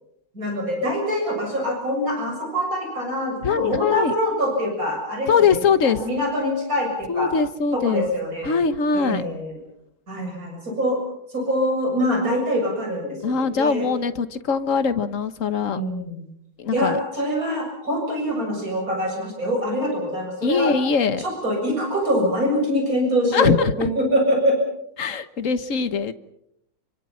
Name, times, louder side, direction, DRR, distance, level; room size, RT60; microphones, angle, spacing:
voice 1, 0.3-5.3 5.8-7.3 7.7-8.5 8.9-9.6 10.1-11.0 11.3-13.9 15.7-16.2 16.7-20.7 21.2-24.5, equal, 40° right, 1 dB, 7.8 m, -24 dB
voice 2, 3.4-4.1 5.3-6.0 7.1-8.1 8.4-9.2 13.2-15.8 16.6-17.0 20.4-21.2 23.3-23.9 25.0-26.1, left 5 dB, 45° left, 12 dB, 1.4 m, -22 dB
28.5 x 25.5 x 5.8 m, 0.74 s
omnidirectional pair, 2.2 m